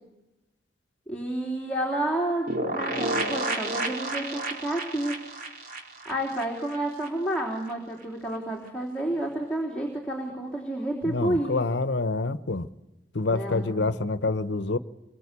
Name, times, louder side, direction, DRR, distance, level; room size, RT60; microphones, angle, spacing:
voice 1, 1.1-5.2 6.1-11.5 13.3-13.7, right 1 dB, 5° left, 3.6 m, -30 dB
sound 1, 2.5-7.1 7.4-7.5 7.7-7.8, right 2 dB, 55° right, 3.3 m, -31 dB
voice 2, 11.0-12.7 13.1-14.8, left 3 dB, 80° left, 1.0 m, -27 dB
27.0 x 23.0 x 8.3 m
head